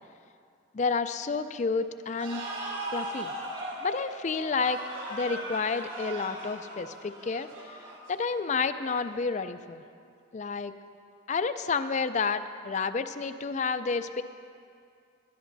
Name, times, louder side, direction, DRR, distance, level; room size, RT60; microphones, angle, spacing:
voice 1, 0.7-2.4 2.9-3.3 3.8-7.8 8.1-9.8 10.3-10.7 11.3-14.2, left 4 dB, 35° left, 11 dB, 0.4 m, -30 dB
sound 1, 2.2-8.6, right 1 dB, 65° right, 3.3 m, -38 dB
19.5 x 12.5 x 2.7 m, 2.3 s
head